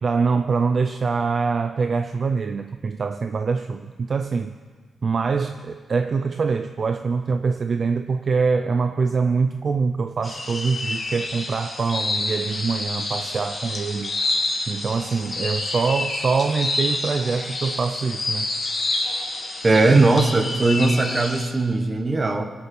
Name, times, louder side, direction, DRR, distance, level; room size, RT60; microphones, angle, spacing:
voice 1, 0.0-4.5 5.0-14.2 14.7-18.5, right 5 dB, 40° right, 9 dB, 0.5 m, -24 dB
sound 1, 10.2-21.5, left 2 dB, 30° left, 1.9 m, -28 dB
voice 2, 19.6-22.4, right 3 dB, 20° right, 7 dB, 1.1 m, -19 dB
24.5 x 8.7 x 6.0 m, 1.5 s
wide cardioid pair, 180°, 0 cm